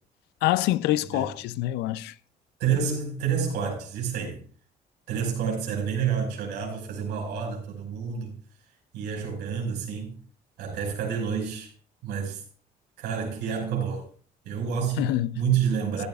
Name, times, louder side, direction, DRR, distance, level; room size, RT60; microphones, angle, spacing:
voice 1, 0.4-2.1 15.0-15.4, left 15 dB, 90° left, 0.5 m, -26 dB
voice 2, 2.6-4.4 5.1-8.4 8.9-10.2 10.6-11.7 12.0-12.4 13.0-14.1 14.4-15.1 15.4-16.1, right 7 dB, 85° right, 5.5 m, -28 dB
15.0 x 12.0 x 2.4 m
cardioid pair, 110°, 17 cm